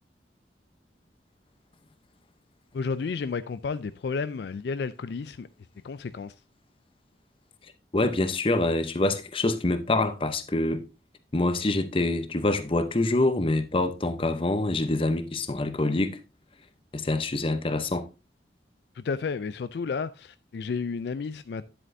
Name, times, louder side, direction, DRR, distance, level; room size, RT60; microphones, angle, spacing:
voice 1, 2.7-5.5 5.8-6.3 18.9-21.6, left 5 dB, 65° left, 0.4 m, -32 dB
voice 2, 7.9-10.8 11.3-16.2 16.9-18.1, left 2 dB, 30° left, 0.7 m, -25 dB
9.9 x 7.9 x 2.6 m
head